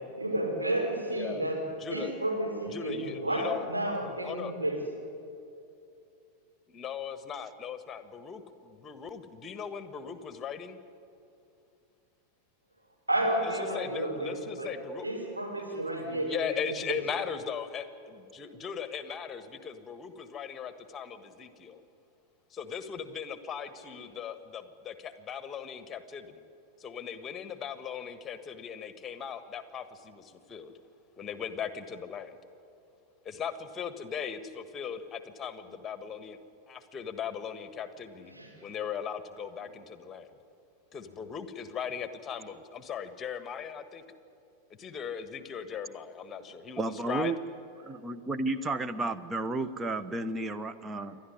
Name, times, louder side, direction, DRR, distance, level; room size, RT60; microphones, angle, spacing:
voice 1, 0.1-1.6 1.9-4.8 13.1-14.7 15.0-17.0 38.3-38.5, right 1 dB, 80° right, -1 dB, 5.4 m, -31 dB
voice 2, 1.1-1.5 1.8-2.1 2.7-3.6 4.2-4.5 6.7-10.8 13.4-15.1 15.6-21.8 22.5-26.4 26.8-30.7 31.2-32.4 33.2-36.4 36.7-38.3 38.6-40.3 40.9-44.0 44.8-47.3, left 7 dB, 20° left, 11 dB, 1.5 m, -38 dB
voice 3, 46.8-47.4 47.8-51.2, right 2 dB, 15° right, 12 dB, 1.0 m, -32 dB
28.5 x 12.0 x 9.7 m, 2.6 s
figure-of-eight pair, 90°, 0 cm